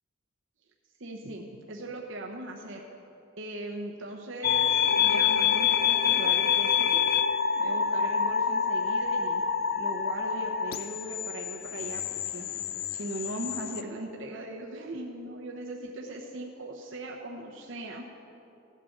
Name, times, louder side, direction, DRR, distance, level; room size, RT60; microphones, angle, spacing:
voice 1, 1.0-2.8 3.4-7.0 7.6-9.4 9.8-12.5 12.9-18.0, right 1 dB, 70° right, 0 dB, 1.0 m, -39 dB
sound 1, 4.4-13.8, left 7 dB, 50° left, 0.4 m, -27 dB
15.0 x 8.4 x 5.8 m, 2.8 s
head